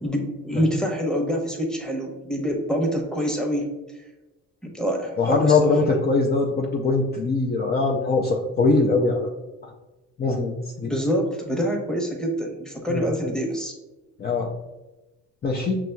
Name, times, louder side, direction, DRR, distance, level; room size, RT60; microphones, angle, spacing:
voice 1, 0.0-3.7 4.6-5.6 10.8-13.7, equal, ahead, 0 dB, 1.0 m, -26 dB
voice 2, 5.2-9.3 9.6-9.7 10.2-10.5 10.8-10.9 12.9-13.1 14.2-14.5 15.4-15.8, left 3 dB, 35° left, -1 dB, 0.5 m, -21 dB
5.9 x 3.0 x 2.3 m, 1.1 s
cardioid pair, 90°, 30 cm